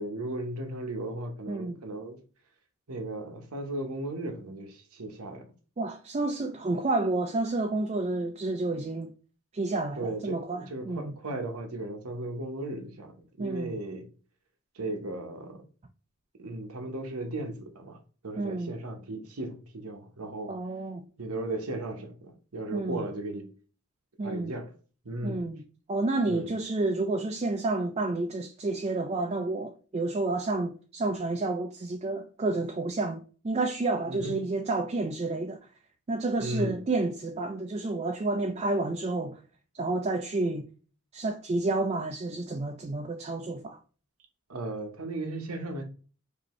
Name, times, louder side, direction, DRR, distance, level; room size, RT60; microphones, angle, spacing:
voice 1, 0.0-2.2 2.9-5.5 9.9-14.1 14.7-15.6 16.4-18.0 18.2-20.5 21.2-23.5 24.2-24.7 25.0-25.4 26.3-26.5 34.1-34.4 36.4-36.8 44.5-45.8, right 1 dB, 85° right, 1.0 m, -36 dB
voice 2, 5.8-9.1 9.5-11.1 13.4-13.8 18.4-18.8 20.5-21.1 22.7-23.1 24.2-24.5 25.2-25.6 25.9-35.7 36.1-39.4 39.7-40.7 41.1-43.8, right 2 dB, 30° right, 0.3 m, -30 dB
5.1 x 2.7 x 3.0 m
head